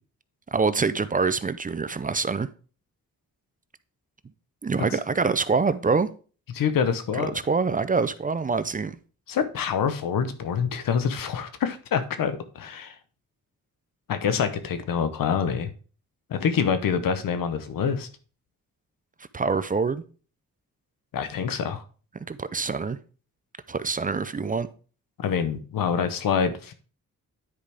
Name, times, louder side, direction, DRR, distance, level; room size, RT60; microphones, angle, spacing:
voice 1, 0.5-2.5 4.6-6.1 7.1-9.0 19.3-20.0 22.3-23.0 23.7-24.7, right 4 dB, 25° right, 0.5 m, -25 dB
voice 2, 6.5-7.3 9.3-12.9 14.1-15.7 16.3-18.1 21.1-21.8 25.2-26.7, left 7 dB, 85° left, 0.9 m, -26 dB
9.6 x 5.0 x 3.4 m
cardioid pair, 75°, 33 cm